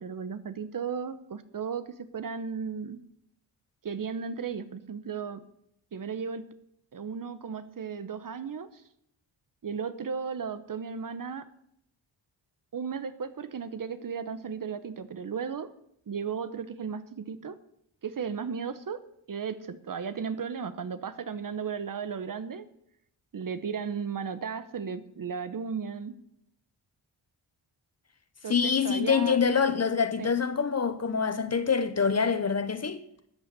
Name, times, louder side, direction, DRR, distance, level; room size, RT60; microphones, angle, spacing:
voice 1, 0.0-3.0 3.8-5.4 5.9-6.5 6.9-8.8 9.6-11.5 12.7-15.7 16.1-17.6 18.0-19.0 19.3-22.6 23.3-26.1 28.4-29.4 30.2-30.3, right 6 dB, 45° right, 0.9 m, -35 dB
voice 2, 28.5-33.0, left 6 dB, 35° left, 0.9 m, -25 dB
13.0 x 7.8 x 6.7 m
cardioid pair, 95°, 46 cm